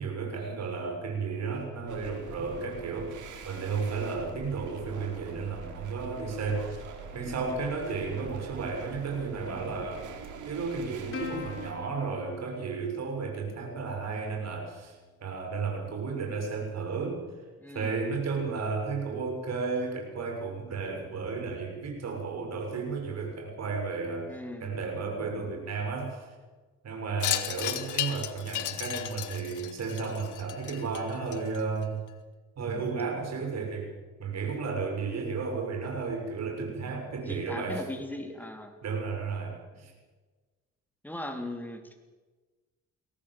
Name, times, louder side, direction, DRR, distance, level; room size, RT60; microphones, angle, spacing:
voice 1, 0.0-6.8 7.1-10.1 10.4-17.2 17.7-24.3 24.6-26.3 26.8-32.0 32.6-33.9 34.2-37.8 38.8-39.9, right 4 dB, 60° right, 2 dB, 6.8 m, -33 dB
sound 1, 1.9-11.7, right 6 dB, 80° right, 4.4 m, -44 dB
Plucked string instrument, 11.1-13.9, left 7 dB, 45° left, 4.9 m, -43 dB
voice 2, 17.6-17.9 24.3-24.8 37.3-38.8 39.8-39.9 41.0-41.9, left 1 dB, 5° left, 4 dB, 3.5 m, -39 dB
Wind chime, 27.2-31.8, left 12 dB, 85° left, 1.7 m, -34 dB
23.0 x 17.5 x 7.7 m, 1.3 s
cardioid pair, 90°, 30 cm